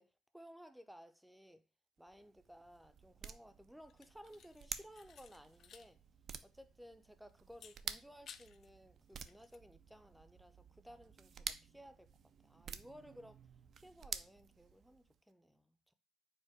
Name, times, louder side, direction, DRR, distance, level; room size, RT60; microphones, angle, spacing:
voice 1, 0.0-1.7 2.0-6.0 6.4-13.5 13.8-15.9, equal, ahead, 0.5 m, -58 dB
sound 1, 2.0-15.2, right 7 dB, 50° right, 0.4 m, -51 dB
sound 2, 3.9-5.9 6.2-6.3 7.5-8.7 9.1-9.6, left 7 dB, 55° left, 0.4 m, -59 dB
4.7 x 2.1 x 4.4 m
supercardioid pair, 85°, 0 cm